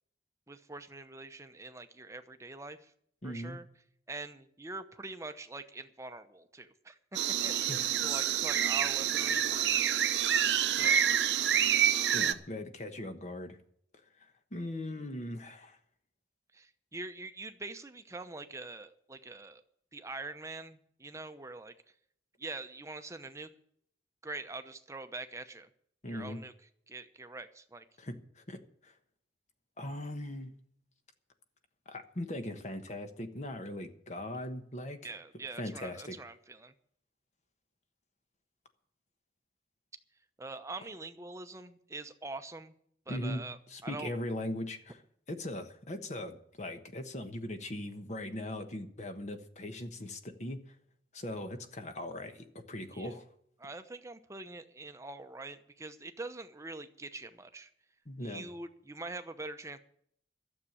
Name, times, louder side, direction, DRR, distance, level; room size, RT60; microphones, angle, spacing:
voice 1, 0.5-2.9 3.2-3.6 4.1-7.0 7.4-10.0 10.7-11.0 16.5-19.6 19.9-21.7 22.4-23.5 24.2-25.7 26.1-26.5 26.9-27.8 35.0-36.7 40.4-42.7 43.1-44.1 52.9-53.1 53.6-57.7 58.2-59.8, right 3 dB, 15° right, 9 dB, 0.8 m, -44 dB
voice 2, 3.2-3.6 7.7-7.8 12.1-13.6 14.2-15.8 26.0-26.4 28.0-28.9 29.8-30.5 31.9-35.1 35.6-36.2 43.1-45.0 45.3-50.7 51.1-53.3 58.1-58.4, left 1 dB, 40° left, 7 dB, 1.2 m, -40 dB
sound 1, 7.1-12.3, right 9 dB, 75° right, 0.8 m, -27 dB
12.5 x 7.5 x 9.9 m, 0.67 s
head